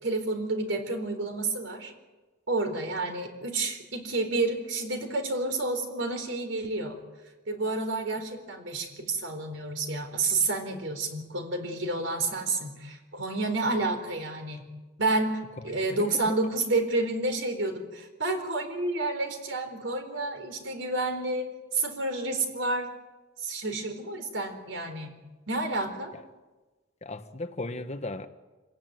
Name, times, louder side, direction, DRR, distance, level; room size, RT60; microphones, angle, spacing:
voice 1, 0.0-1.9 2.5-7.0 7.5-14.6 15.0-22.9 23.4-25.2 25.5-26.1, right 2 dB, 80° right, 4.0 m, -30 dB
voice 2, 15.7-16.3 26.1-26.2 27.0-28.3, left 2 dB, 35° left, 1.3 m, -36 dB
26.0 x 16.0 x 9.3 m
head